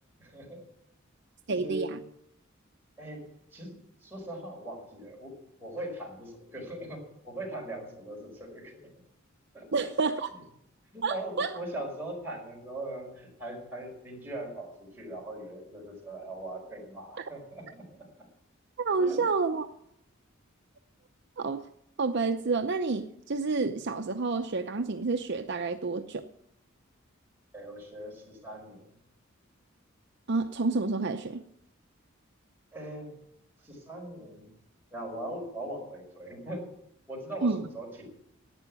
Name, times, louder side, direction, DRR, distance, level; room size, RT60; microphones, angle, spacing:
voice 1, 0.2-0.7 1.5-2.0 3.0-3.2 3.5-3.8 4.0-8.9 9.5-9.9 10.9-18.3 19.0-19.3 27.5-28.9 32.7-33.1 33.6-34.5 34.9-36.7 37.1-38.1, right 1 dB, 10° right, -3 dB, 5.2 m, -40 dB
voice 2, 1.5-2.0 9.7-10.3 11.0-11.5 18.8-19.7 21.4-21.6 22.0-26.2 30.3-31.4 37.4-37.6, right 4 dB, 60° right, 6 dB, 0.7 m, -29 dB
11.5 x 9.0 x 9.5 m, 0.72 s
head